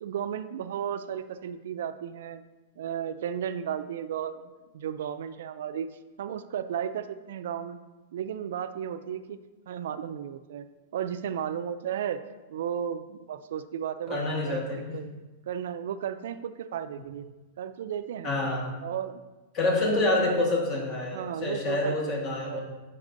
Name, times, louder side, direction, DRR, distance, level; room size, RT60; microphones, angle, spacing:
voice 1, 0.0-2.4 2.8-5.9 6.2-7.8 8.1-9.4 9.7-10.7 10.9-12.2 12.5-14.2 14.5-15.1 15.5-17.3 17.6-18.3 18.8-19.2 20.2-20.3 21.1-22.6, right 9 dB, 75° right, 10 dB, 0.3 m, -34 dB
voice 2, 14.1-15.0 18.2-18.6 19.5-22.6, left 2 dB, 30° left, 0 dB, 1.2 m, -27 dB
7.4 x 5.9 x 2.6 m, 1.2 s
supercardioid pair, 155°, 0 cm